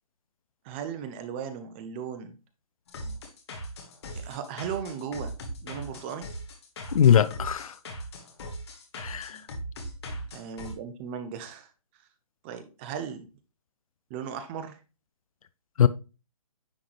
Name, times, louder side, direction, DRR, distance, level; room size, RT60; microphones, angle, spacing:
voice 1, 0.6-2.4 4.2-5.3 5.6-6.3 10.3-11.7 12.0-12.1 12.4-13.3 14.1-14.8, right 7 dB, 20° right, 0.6 m, -36 dB
sound 1, 2.9-10.7, equal, 45° left, 1.6 m, -39 dB
voice 2, 6.9-7.8 8.9-9.4 15.8-15.9, left 8 dB, 70° left, 0.5 m, -21 dB
9.7 x 3.8 x 3.1 m
hypercardioid pair, 155°, 19 cm